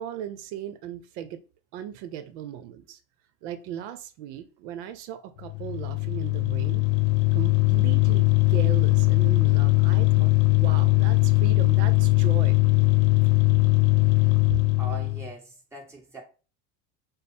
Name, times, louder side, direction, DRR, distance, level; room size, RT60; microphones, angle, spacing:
voice 1, 0.0-1.4 1.7-3.0 3.4-6.9 7.3-12.6, right 10 dB, 85° right, 0.6 m, -37 dB
sound 1, 5.4-15.3, left 22 dB, 80° left, 0.7 m, -20 dB
voice 2, 14.8-16.2, right 3 dB, 10° right, 1.3 m, -41 dB
5.1 x 2.0 x 4.2 m
cardioid pair, 160°, 35 cm